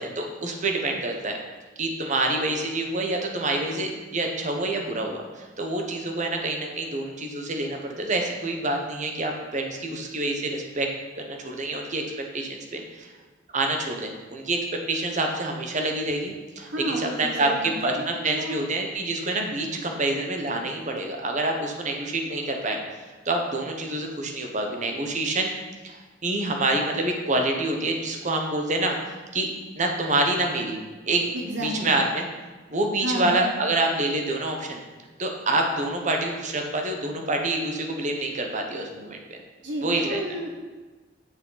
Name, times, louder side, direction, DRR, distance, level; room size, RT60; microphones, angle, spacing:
voice 1, 0.0-1.4 1.8-10.9 11.1-12.0 12.3-13.1 13.5-22.8 23.2-25.5 25.8-29.0 29.3-29.5 29.7-30.8 31.0-32.3 32.7-34.8 35.2-39.4 39.8-40.2, right 2 dB, 40° right, 3 dB, 1.0 m, -27 dB
voice 2, 16.6-18.5 31.3-32.0 33.0-33.4 39.6-40.5, right 1 dB, 70° right, -1 dB, 1.1 m, -31 dB
7.2 x 6.3 x 4.0 m, 1.3 s
head